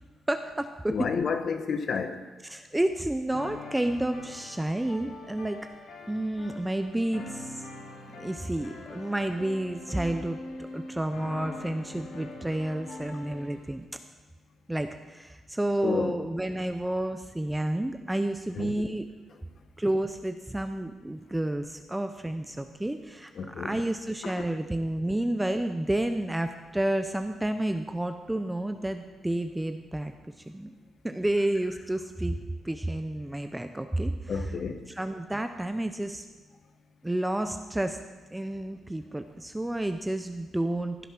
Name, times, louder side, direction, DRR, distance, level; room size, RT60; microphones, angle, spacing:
voice 1, 0.3-1.0 2.4-5.6 6.1-7.7 8.2-10.4 10.7-13.8 14.7-19.0 19.8-30.1 30.5-30.7 31.0-32.4 32.6-34.5 34.9-36.2 37.0-38.0 38.3-41.0, right 1 dB, 10° right, 7 dB, 0.7 m, -30 dB
voice 2, 0.9-2.2 15.8-16.2 18.6-18.7 23.4-23.8 24.2-24.5 34.3-34.8, left 5 dB, 55° left, 8 dB, 1.1 m, -30 dB
sound 1, 3.3-13.6, left 3 dB, 75° left, 2.6 m, -43 dB
15.0 x 8.1 x 6.0 m, 1.2 s
cardioid pair, 105°, 0 cm